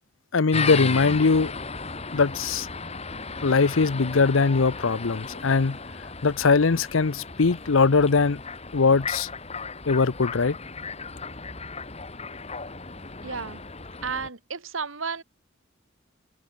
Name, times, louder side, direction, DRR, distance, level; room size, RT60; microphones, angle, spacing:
voice 1, 0.3-1.5 2.1-2.7 3.4-5.8 6.2-8.4 8.7-9.3 9.9-10.6, left 4 dB, 70° left, 0.7 m, -21 dB
sound 1, 0.5-14.3, left 4 dB, 30° left, 2.3 m, -35 dB
voice 2, 13.2-13.6 14.0-15.2, right 5 dB, 75° right, 1.7 m, -32 dB
head